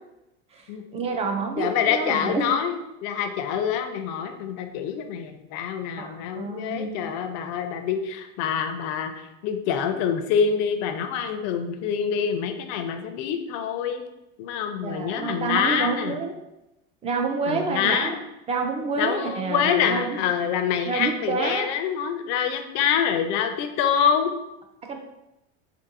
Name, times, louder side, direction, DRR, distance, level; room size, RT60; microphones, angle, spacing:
voice 1, 0.9-2.5 6.0-6.9 14.8-16.3 17.0-18.2 18.5-20.2 20.9-21.7 24.9-25.0, right 4 dB, 20° right, 3 dB, 0.3 m, -28 dB
voice 2, 1.6-9.1 9.4-14.0 14.4-16.2 17.5-18.2 19.0-24.3, left 7 dB, 60° left, 7 dB, 0.4 m, -26 dB
2.6 x 2.5 x 2.7 m, 0.91 s
supercardioid pair, 120°, 31 cm